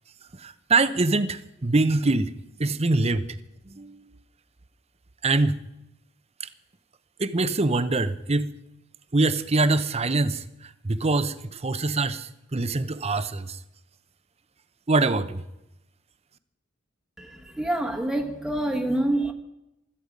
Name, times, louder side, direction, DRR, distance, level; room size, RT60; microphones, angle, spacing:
voice 1, 0.4-2.3 2.6-3.3 3.7-4.0 5.2-5.6 6.4-6.5 7.2-8.5 9.1-10.4 10.8-13.6 14.9-15.4, right 3 dB, 30° right, 0.8 m, -24 dB
voice 2, 17.2-19.3, right 1 dB, 5° right, 1.3 m, -27 dB
16.5 x 13.5 x 5.2 m
head